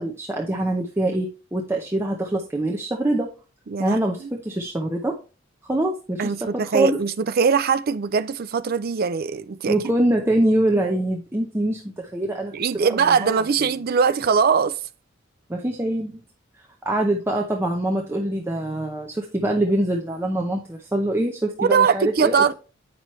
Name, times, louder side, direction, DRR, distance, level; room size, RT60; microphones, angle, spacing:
voice 1, 0.0-3.3 3.8-5.2 5.7-7.0 9.7-12.5 13.0-13.3 13.6-13.8 15.5-16.2 16.8-22.5, right 1 dB, 15° right, 0.8 m, -24 dB
voice 2, 3.7-4.3 6.2-9.8 12.5-14.8 21.6-22.5, right 6 dB, 50° right, 0.5 m, -21 dB
8.3 x 5.9 x 3.1 m
head